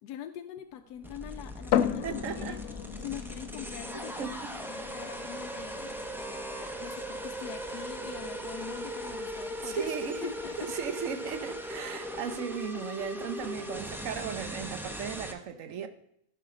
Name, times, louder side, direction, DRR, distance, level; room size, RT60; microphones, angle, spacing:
voice 1, 0.0-2.6 3.0-6.0 6.4-9.9 10.2-10.8 13.4-13.5, left 10 dB, 85° left, 1.1 m, -43 dB
sound 1, 0.6-10.5, right 1 dB, 85° right, 2.5 m, -57 dB
sound 2, 1.0-15.3, equal, ahead, 0.6 m, -39 dB
sound 3, 1.7-15.2, left 10 dB, 70° left, 0.8 m, -38 dB
voice 2, 2.0-2.6 3.9-4.5 6.5-6.8 9.6-15.9, right 7 dB, 60° right, 1.1 m, -37 dB
14.5 x 5.8 x 4.9 m
omnidirectional pair, 1.6 m